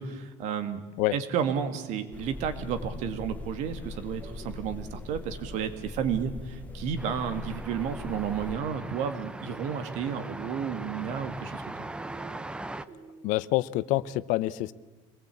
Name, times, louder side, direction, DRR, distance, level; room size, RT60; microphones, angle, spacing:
voice 1, 0.0-0.8 1.1-11.9, right 7 dB, 60° right, 9 dB, 2.2 m, -32 dB
sound 1, 2.1-8.6, left 3 dB, 10° left, 1.2 m, -41 dB
sound 2, 2.1-13.4, right 4 dB, 30° right, 2.3 m, -52 dB
sound 3, 7.0-12.9, right 2 dB, 5° right, 0.6 m, -40 dB
voice 2, 13.2-14.7, left 17 dB, 70° left, 17 dB, 0.8 m, -27 dB
25.0 x 19.5 x 8.5 m, 1.3 s
cardioid pair, 160°, 14 cm